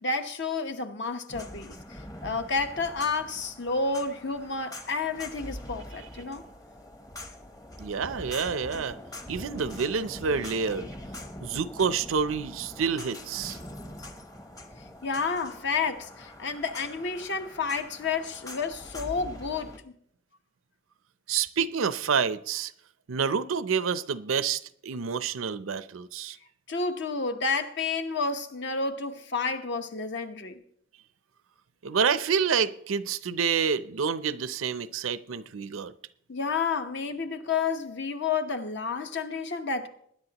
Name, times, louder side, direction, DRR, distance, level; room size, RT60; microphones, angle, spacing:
voice 1, 0.0-6.5 15.0-19.9 26.7-30.6 36.3-39.9, left 4 dB, 60° left, 1.0 m, -30 dB
sound 1, 1.3-19.8, left 1 dB, 15° left, 0.9 m, -43 dB
voice 2, 7.8-9.0 9.3-10.9 11.4-13.6 21.3-22.7 23.1-26.4 31.8-35.9, right 6 dB, 80° right, 0.6 m, -28 dB
20.5 x 10.0 x 2.9 m
head